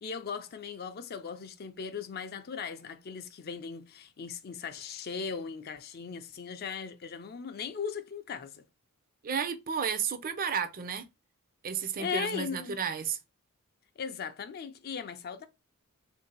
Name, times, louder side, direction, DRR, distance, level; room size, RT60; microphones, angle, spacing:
voice 1, 0.0-8.6 12.0-12.8 14.0-15.5, left 6 dB, 45° left, 0.4 m, -38 dB
voice 2, 9.2-11.1 11.6-13.2, right 6 dB, 40° right, 0.5 m, -32 dB
3.7 x 2.7 x 3.9 m
head